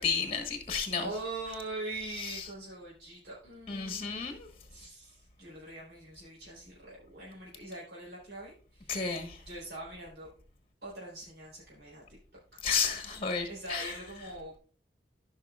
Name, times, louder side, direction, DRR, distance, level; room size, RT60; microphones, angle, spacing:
voice 1, 0.0-1.1 2.2-2.5 3.7-4.5 8.9-9.4 12.6-14.0, left 6 dB, 35° left, 1.2 m, -32 dB
voice 2, 1.0-4.2 4.7-8.9 9.5-10.3 10.8-12.0 12.5-12.6 13.5-14.6, right 2 dB, 70° right, 3.9 m, -42 dB
15.0 x 5.6 x 2.4 m
head